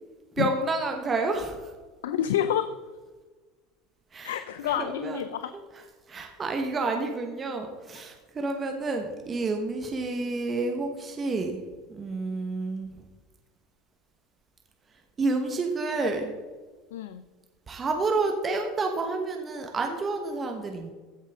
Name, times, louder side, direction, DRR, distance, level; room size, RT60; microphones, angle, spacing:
voice 1, 0.4-1.7 4.1-5.2 5.7-11.6 11.9-13.0 15.2-16.3 17.7-20.9, right 3 dB, 30° right, 4 dB, 1.2 m, -29 dB
voice 2, 2.0-2.7 4.2-5.5 16.9-17.2, left 10 dB, 90° left, 11 dB, 0.4 m, -28 dB
15.5 x 5.5 x 3.7 m, 1.3 s
supercardioid pair, 95°, 0 cm